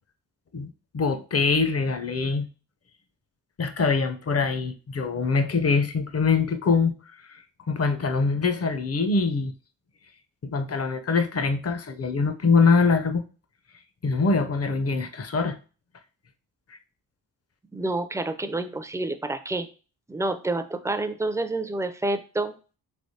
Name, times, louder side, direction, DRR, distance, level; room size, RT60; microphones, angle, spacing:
voice 1, 0.5-2.5 3.6-6.9 7.3-7.4 7.7-9.5 10.4-13.2 14.0-15.6, left 4 dB, 40° left, 0.6 m, -23 dB
voice 2, 17.7-19.7 20.1-22.8, right 2 dB, 10° right, 0.4 m, -28 dB
3.3 x 3.0 x 2.7 m
supercardioid pair, 45°, 38 cm